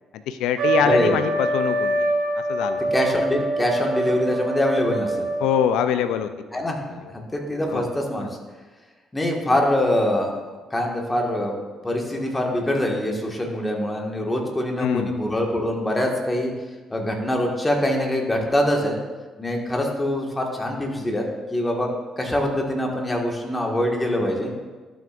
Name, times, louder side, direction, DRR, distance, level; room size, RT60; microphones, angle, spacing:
voice 1, 0.3-2.1 2.5-2.9 5.4-6.6 7.7-7.9 14.8-15.1, left 9 dB, 70° left, 11 dB, 0.4 m, -24 dB
Trumpet, 0.6-5.6, right 2 dB, 65° right, 1.4 m, -24 dB
voice 2, 0.8-1.2 2.9-5.3 6.5-6.8 7.3-8.4 9.1-10.4 10.7-11.6 11.8-16.5 16.9-19.0 19.4-21.2 21.5-21.9 22.2-24.5, left 1 dB, 20° left, 0 dB, 1.8 m, -24 dB
12.5 x 6.0 x 2.6 m, 1.3 s
hypercardioid pair, 45°, 0 cm